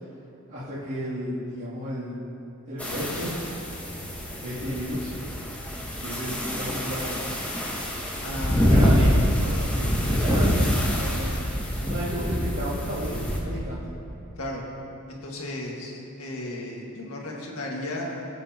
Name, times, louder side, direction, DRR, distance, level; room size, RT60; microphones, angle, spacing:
voice 1, 0.5-2.1 2.7-3.3 4.4-5.1 6.0-7.3 8.7-9.2 9.4-11.4 11.8-13.9, equal, 50° right, -13 dB, 2.8 m, -33 dB
sound 1, 2.8-13.4, equal, 5° left, 1.3 m, -25 dB
voice 2, 8.2-9.1 14.4-14.6 15.1-18.3, left 1 dB, 70° left, -2 dB, 1.8 m, -34 dB
18.0 x 8.2 x 2.9 m, 2.7 s
head